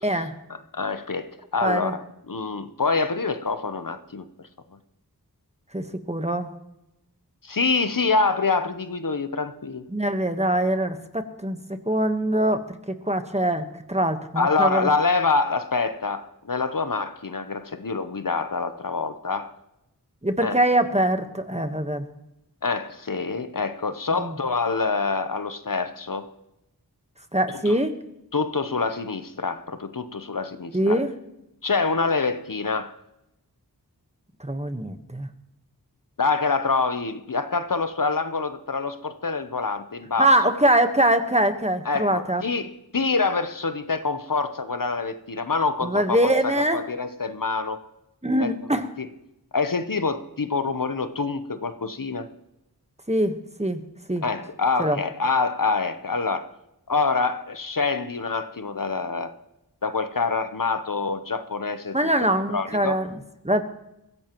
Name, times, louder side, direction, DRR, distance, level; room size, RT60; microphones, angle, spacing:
voice 1, 0.0-0.3 1.6-1.9 5.7-6.5 9.9-14.9 20.2-22.1 24.2-24.3 27.3-28.0 30.7-31.1 34.4-35.3 40.2-42.4 45.8-46.8 48.2-48.8 53.1-53.8 54.1-54.2 54.8-55.0 61.9-63.1 63.4-63.6, right 1 dB, 15° right, 8 dB, 1.2 m, -23 dB
voice 2, 0.7-4.3 7.4-9.9 14.4-19.5 20.4-20.6 22.6-26.3 27.7-27.8 28.3-31.0 31.6-32.9 36.2-40.3 41.8-47.8 48.4-48.5 49.0-49.1 49.5-52.3 54.2-56.5 56.9-59.3 59.8-62.9, left 4 dB, 55° left, 10 dB, 0.8 m, -26 dB
22.5 x 15.5 x 3.0 m, 0.88 s
wide cardioid pair, 40°, 39 cm